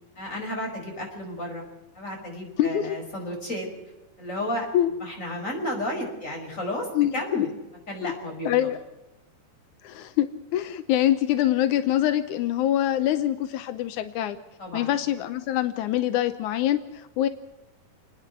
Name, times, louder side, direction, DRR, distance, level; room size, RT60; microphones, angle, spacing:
voice 1, 0.2-1.6 1.9-3.7 4.2-4.7 5.0-7.5 7.9-8.7 14.6-14.9, left 1 dB, 20° left, 1 dB, 5.5 m, -32 dB
voice 2, 2.6-3.0 4.7-4.9 6.9-7.5 8.0-8.1 8.4-8.8 9.8-14.4 14.7-17.3, left 12 dB, 85° left, 10 dB, 1.7 m, -24 dB
29.5 x 10.0 x 9.3 m, 1.0 s
omnidirectional pair, 4.5 m